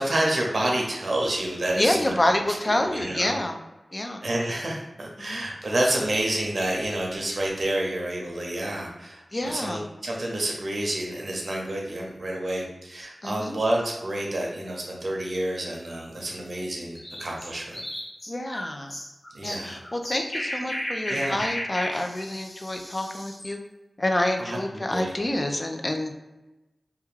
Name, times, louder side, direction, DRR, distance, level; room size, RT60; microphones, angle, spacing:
voice 1, 0.0-2.2 2.8-3.4 4.2-17.8 19.3-19.8 21.1-21.4 24.4-25.1, right 1 dB, 60° right, -1 dB, 0.6 m, -29 dB
voice 2, 1.8-3.6 3.9-4.2 5.2-5.4 9.3-9.8 13.2-13.6 18.3-18.9 19.4-23.6 24.0-26.1, left 1 dB, 35° left, 4 dB, 0.3 m, -27 dB
sound 1, 17.0-23.5, equal, 60° left, 0.7 m, -34 dB
2.3 x 2.2 x 3.1 m, 1.0 s
wide cardioid pair, 55°, 0 cm